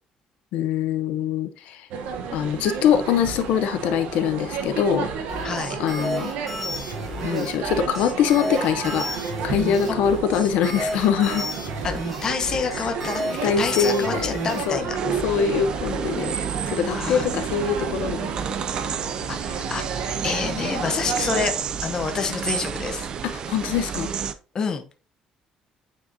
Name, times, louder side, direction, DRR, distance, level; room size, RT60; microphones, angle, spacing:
voice 1, 0.5-1.9 2.3-5.1 5.8-6.3 7.2-9.1 9.4-11.5 13.4-14.4 14.7-16.3 16.7-18.3 23.2-24.1, left 8 dB, 80° left, 8 dB, 0.6 m, -23 dB
sound 1, 1.9-21.5, right 6 dB, 85° right, 0.9 m, -31 dB
sound 2, 5.3-14.6, left 1 dB, 5° right, 1.7 m, -32 dB
voice 2, 5.4-5.8 9.9-10.0 11.8-13.2 13.6-15.0 16.9-17.3 19.3-21.5 21.8-23.1 24.5-24.8, left 5 dB, 30° left, 7 dB, 0.7 m, -28 dB
sound 3, 14.9-24.3, right 7 dB, 35° right, 0.4 m, -31 dB
8.6 x 4.7 x 2.7 m, 0.35 s
cardioid pair, 175°, 2 cm